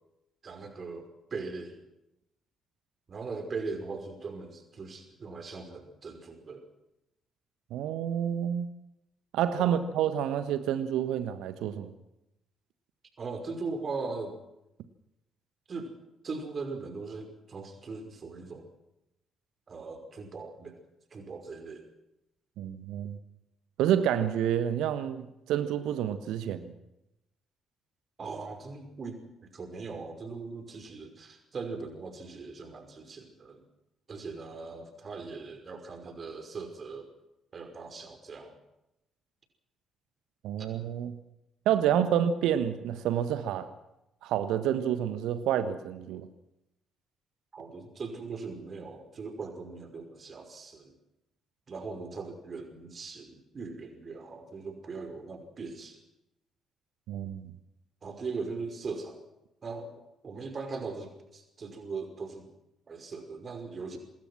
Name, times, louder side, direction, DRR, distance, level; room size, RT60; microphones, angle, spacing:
voice 1, 0.4-1.8 3.1-6.6 9.6-9.8 13.2-14.4 15.7-15.9 16.2-18.7 19.7-20.8 21.1-21.9 28.2-29.2 29.5-33.6 34.1-37.1 37.5-38.6 40.6-40.7 41.8-41.9 47.5-51.0 51.7-56.0 58.0-59.2 59.6-59.9 60.2-62.5 62.9-64.0, right 4 dB, 40° right, 5 dB, 5.4 m, -40 dB
voice 2, 7.7-8.7 9.3-11.9 22.6-23.2 23.8-26.7 40.4-41.1 41.6-43.7 44.2-46.3 57.1-57.5, right 10 dB, 60° right, 11 dB, 1.3 m, -29 dB
26.0 x 20.5 x 6.1 m, 0.89 s
figure-of-eight pair, 45°, 0 cm